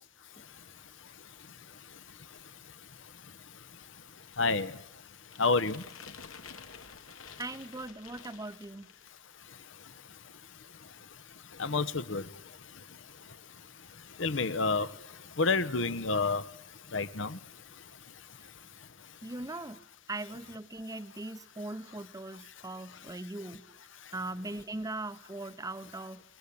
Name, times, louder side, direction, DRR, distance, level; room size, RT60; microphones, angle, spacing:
voice 1, 4.4-4.7 5.4-5.8 11.6-12.2 14.2-14.9 15.4-16.4 16.9-17.4, left 3 dB, 65° left, 14 dB, 1.1 m, -28 dB
sound 1, 5.2-9.3, left 6 dB, 90° left, 2.2 m, -50 dB
voice 2, 7.4-8.9 19.2-19.8 20.1-23.6 24.1-26.2, right 2 dB, 15° right, 13 dB, 0.9 m, -40 dB
28.5 x 21.0 x 8.6 m, 0.96 s
head